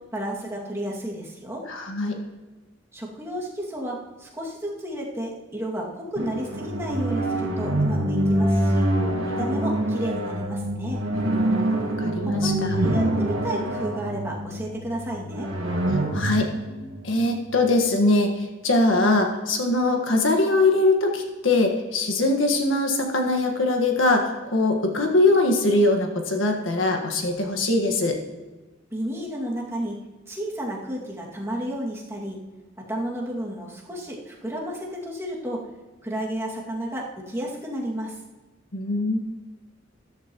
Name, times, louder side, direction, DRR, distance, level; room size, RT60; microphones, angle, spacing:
voice 1, 0.1-1.6 2.9-8.9 9.2-11.0 12.2-15.5 28.9-29.9 30.3-32.4 32.9-35.6 36.0-38.2, equal, 15° right, -4 dB, 2.3 m, -32 dB
voice 2, 1.7-2.2 12.0-12.8 16.1-16.5 17.0-28.2 38.7-39.2, left 2 dB, 75° left, 3 dB, 1.6 m, -22 dB
sound 1, 6.2-17.8, right 1 dB, 90° right, 1.7 m, -25 dB
13.5 x 12.5 x 3.1 m, 1.2 s
head